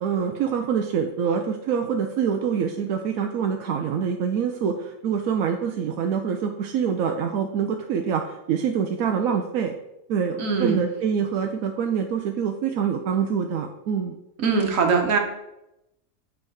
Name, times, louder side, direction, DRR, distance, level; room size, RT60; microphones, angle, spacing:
voice 1, 0.0-9.7 10.1-14.2, right 7 dB, 90° right, 4 dB, 1.1 m, -25 dB
voice 2, 10.4-10.8 14.4-15.2, right 5 dB, 75° right, 3 dB, 1.5 m, -21 dB
7.7 x 3.5 x 6.3 m, 0.88 s
omnidirectional pair, 1.4 m